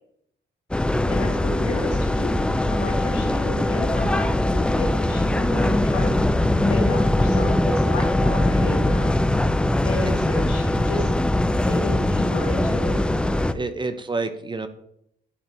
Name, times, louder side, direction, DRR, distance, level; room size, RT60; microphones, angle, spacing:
sound 1, 0.7-13.5, left 1 dB, 5° left, 0.4 m, -21 dB
voice 1, 1.1-6.1 6.6-9.1 9.8-11.1 11.6-13.0, left 2 dB, 85° left, -2 dB, 2.7 m, -31 dB
voice 2, 13.4-14.7, right 3 dB, 25° right, 9 dB, 0.7 m, -29 dB
11.0 x 4.3 x 3.0 m, 0.72 s
cardioid pair, 90°, 20 cm